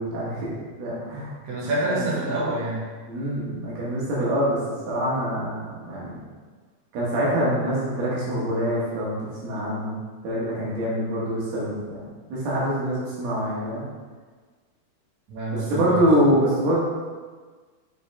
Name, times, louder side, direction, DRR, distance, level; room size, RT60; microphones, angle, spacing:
voice 1, 0.0-1.3 2.0-2.1 3.1-4.6 4.9-6.2 6.9-10.0 10.2-12.0 12.3-13.9 15.7-16.8, equal, 80° right, -7 dB, 3.6 m, -25 dB
voice 2, 1.4-2.9 15.3-16.0, right 2 dB, 55° right, -8 dB, 2.8 m, -27 dB
7.0 x 5.4 x 3.5 m, 1.5 s
omnidirectional pair, 4.4 m